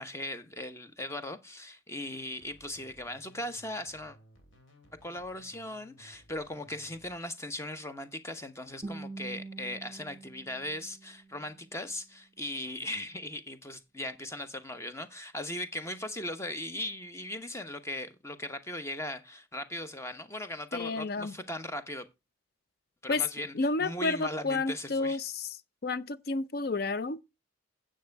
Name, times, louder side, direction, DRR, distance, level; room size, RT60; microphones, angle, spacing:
voice 1, 0.0-4.2 5.0-22.1 23.0-25.2, left 1 dB, 15° left, 0.9 m, -38 dB
sound 1, 2.1-7.1, equal, 80° left, 3.0 m, -59 dB
Guitar, 8.8-11.8, right 3 dB, 20° right, 1.6 m, -45 dB
voice 2, 20.7-21.3 23.1-23.2 23.5-25.5 25.8-27.2, left 3 dB, 50° left, 0.5 m, -30 dB
9.3 x 7.6 x 4.6 m
head